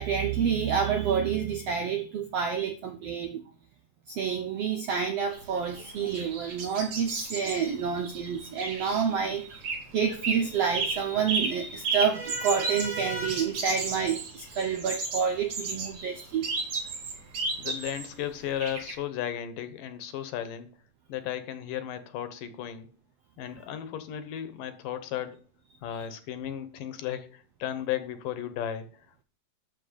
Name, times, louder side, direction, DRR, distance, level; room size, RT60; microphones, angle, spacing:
voice 1, 0.0-3.4 4.1-9.6 9.9-16.5 25.9-26.1, right 7 dB, 75° right, 7 dB, 1.5 m, -28 dB
sound 1, 5.3-9.8 10.1-10.5 10.7-18.1 18.6-18.9, right 3 dB, 50° right, 4.0 m, -33 dB
voice 2, 17.6-20.7 21.1-22.9 23.4-25.4 25.8-29.2, left 10 dB, 75° left, 11 dB, 2.7 m, -35 dB
12.0 x 4.5 x 8.0 m, 0.39 s
omnidirectional pair, 4.0 m